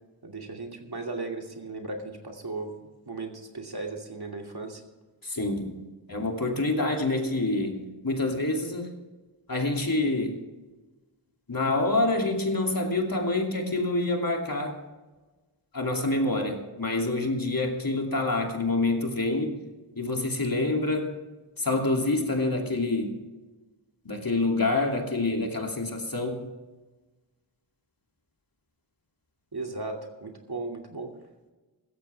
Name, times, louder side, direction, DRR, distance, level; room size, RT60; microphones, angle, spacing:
voice 1, 0.2-4.8 29.5-31.1, right 3 dB, 55° right, 2 dB, 2.6 m, -36 dB
voice 2, 5.2-5.8 6.1-8.9 9.5-10.4 11.5-14.8 15.7-19.6 20.0-21.1 21.6-23.1 24.0-26.4, left 2 dB, 50° left, 2 dB, 2.8 m, -27 dB
16.0 x 14.0 x 3.5 m, 1.2 s
wide cardioid pair, 50°, 46 cm